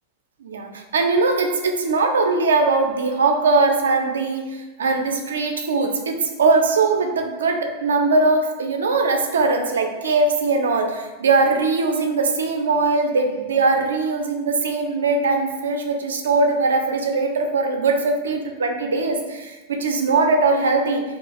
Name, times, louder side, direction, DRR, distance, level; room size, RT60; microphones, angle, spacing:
voice 1, 0.4-21.0, right 3 dB, 65° right, 4 dB, 0.3 m, -20 dB
2.4 x 2.2 x 2.8 m, 1.1 s
figure-of-eight pair, 90°, 0 cm